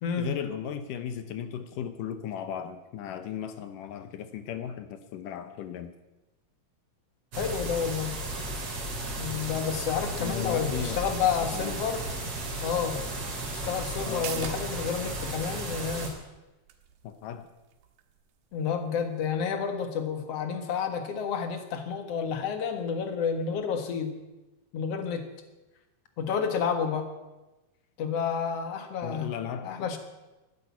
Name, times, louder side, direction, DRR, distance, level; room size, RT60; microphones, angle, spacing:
voice 1, 0.2-5.9 10.2-11.0 11.4-11.8 14.0-14.5 17.0-17.5 29.0-29.7, left 8 dB, 70° left, 10 dB, 2.2 m, -36 dB
sound 1, 7.3-16.1, right 2 dB, 40° right, 3.6 m, -34 dB
voice 2, 7.4-8.1 9.2-12.0 12.6-13.0 13.5-16.1 18.5-24.1 24.7-25.3 26.2-27.1 28.0-29.3 29.6-30.0, left 6 dB, 55° left, 7 dB, 2.0 m, -30 dB
sound 2, 14.0-21.2 21.5-21.6, right 9 dB, 75° right, 3.1 m, -48 dB
12.5 x 10.5 x 9.5 m, 1.0 s
omnidirectional pair, 4.6 m